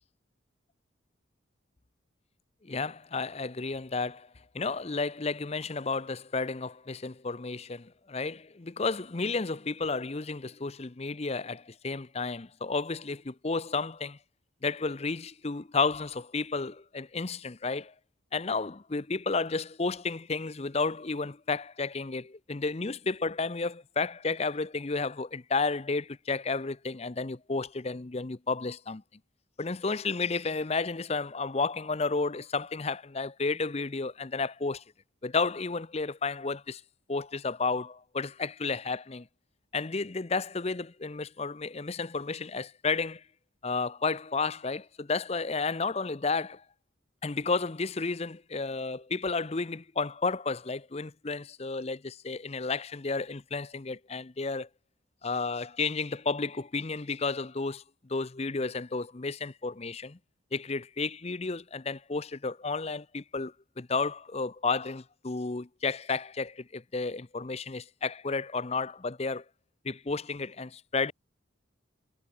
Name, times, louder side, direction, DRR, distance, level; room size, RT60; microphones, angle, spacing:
voice 1, 2.6-4.3 4.5-14.2 14.6-17.9 18.3-29.0 29.6-34.8 35.2-36.8 37.1-39.3 39.7-43.2 43.6-46.6 47.2-54.7 55.2-60.2 60.5-69.4 69.8-71.1, left 4 dB, 30° left, 0.6 m, -32 dB
head